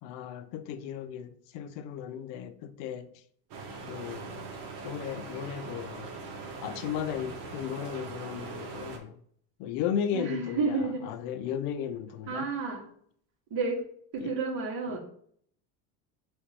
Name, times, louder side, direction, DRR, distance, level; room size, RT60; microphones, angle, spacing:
voice 1, 0.0-3.1 3.9-4.5 4.8-6.1 6.6-9.2 9.6-10.8 11.1-12.5 14.2-14.3, left 9 dB, 60° left, 0.6 m, -35 dB
sound 1, 3.5-9.0, right 4 dB, 65° right, 1.2 m, -41 dB
voice 2, 10.1-11.2 12.3-12.9 13.5-13.8 14.1-15.0, right 4 dB, 50° right, 1.6 m, -31 dB
5.9 x 2.6 x 3.2 m
supercardioid pair, 100°, 48 cm